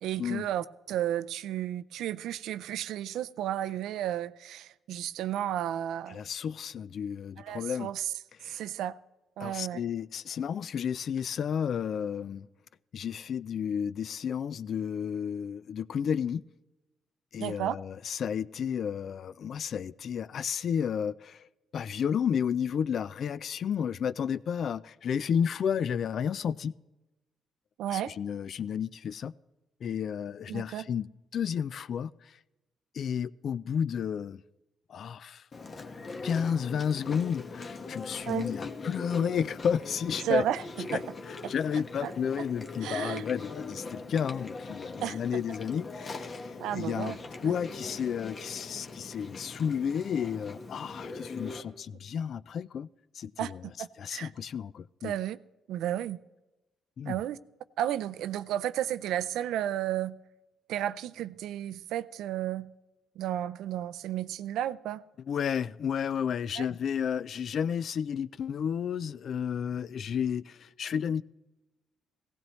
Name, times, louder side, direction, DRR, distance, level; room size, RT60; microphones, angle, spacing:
voice 1, 0.0-6.2 7.4-8.1 8.4-9.0 9.4-9.8 17.4-17.8 27.8-28.1 30.5-30.9 38.3-38.5 40.2-41.0 41.4-41.5 42.0-42.1 42.4-42.5 42.8-43.2 45.0-45.2 46.6-47.2 47.4-47.5 53.4-54.3 55.0-55.4 55.7-56.2 57.1-57.4 57.8-60.2 60.7-62.7 63.2-65.0 66.6-66.7, right 11 dB, 85° right, 0.4 m, -33 dB
voice 2, 6.1-7.9 8.4-8.6 9.4-12.5 12.9-16.4 17.3-21.4 21.7-26.7 27.9-29.3 29.8-31.1 31.3-32.4 32.9-34.4 34.9-35.4 36.2-40.4 40.9-41.0 41.3-47.2 47.4-52.9 53.1-53.6 54.0-55.1 57.0-57.2 65.3-71.2, left 7 dB, 60° left, 0.4 m, -32 dB
Chewing mastication, 35.5-51.6, left 3 dB, 40° left, 1.3 m, -41 dB
17.0 x 16.0 x 3.1 m
cardioid pair, 90°, 0 cm